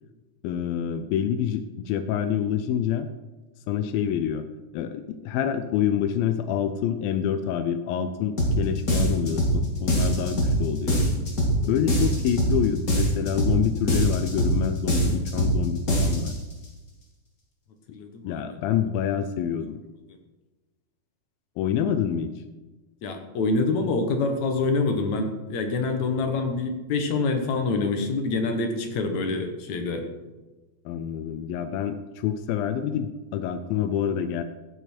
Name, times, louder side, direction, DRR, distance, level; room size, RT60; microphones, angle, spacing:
voice 1, 0.4-3.1 3.7-4.5 4.7-11.1 11.6-16.4 18.2-19.8 21.6-22.3 30.9-34.4, left 9 dB, 90° left, 8 dB, 2.4 m, -27 dB
sound 1, 8.4-8.6 8.9-9.6 9.9-10.6 10.9-11.6 11.9-12.6 12.9-13.6 13.9-14.6 14.9-15.6 15.9-16.3, equal, 30° left, 2.1 m, -22 dB
voice 2, 17.9-18.4 23.0-30.0, left 3 dB, 65° left, 5 dB, 2.2 m, -26 dB
14.0 x 8.2 x 4.4 m, 1.2 s
omnidirectional pair, 4.1 m